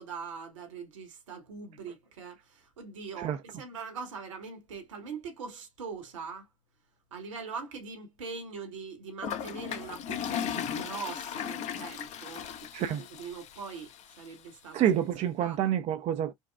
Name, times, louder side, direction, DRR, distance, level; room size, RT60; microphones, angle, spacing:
voice 1, 0.0-6.5 7.1-14.8 15.4-15.6, right 5 dB, 70° right, 1.4 m, -42 dB
Toilet flush, 9.2-14.3, left 9 dB, 45° left, 0.8 m, -37 dB
voice 2, 14.7-16.3, right 10 dB, 40° right, 0.5 m, -28 dB
5.2 x 2.2 x 2.3 m
figure-of-eight pair, 65°, 16 cm